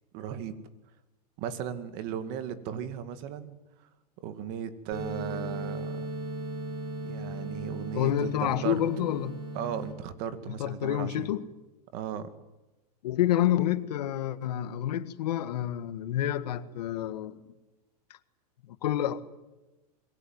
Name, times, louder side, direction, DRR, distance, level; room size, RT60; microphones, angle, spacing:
voice 1, 0.1-0.6 1.4-3.6 4.2-6.1 7.0-8.7 9.5-11.3 11.9-12.3, right 9 dB, 45° right, 2.2 m, -36 dB
sound 1, 4.9-9.9, right 2 dB, 25° right, 5.7 m, -37 dB
voice 2, 7.9-9.3 10.5-11.5 13.0-17.4 18.7-19.2, left 12 dB, 80° left, 1.8 m, -28 dB
25.0 x 22.5 x 9.5 m
supercardioid pair, 150°, 20 cm